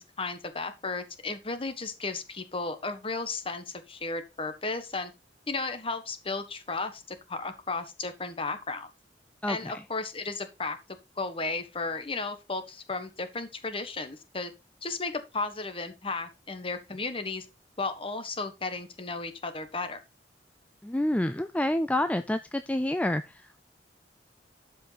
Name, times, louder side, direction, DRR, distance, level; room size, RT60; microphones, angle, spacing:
voice 1, 0.0-5.1 5.5-8.9 9.5-10.8 11.2-14.5 14.8-17.5 17.8-20.0, left 3 dB, 30° left, 10 dB, 1.3 m, -34 dB
voice 2, 9.4-9.8 20.8-23.6, left 1 dB, 10° left, 10 dB, 0.4 m, -28 dB
12.0 x 5.3 x 4.1 m, 0.25 s
head